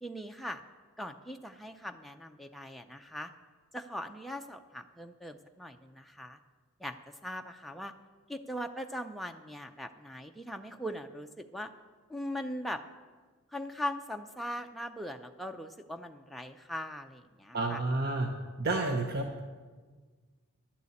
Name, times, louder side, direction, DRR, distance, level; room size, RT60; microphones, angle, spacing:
voice 1, 0.0-0.6 1.0-3.3 3.7-6.4 6.8-7.9 8.3-11.7 12.1-12.8 13.5-17.8, equal, ahead, 4 dB, 0.4 m, -40 dB
voice 2, 17.5-18.3 18.6-19.4, right 2 dB, 45° right, 3 dB, 0.7 m, -30 dB
11.5 x 6.7 x 8.4 m, 1.5 s
head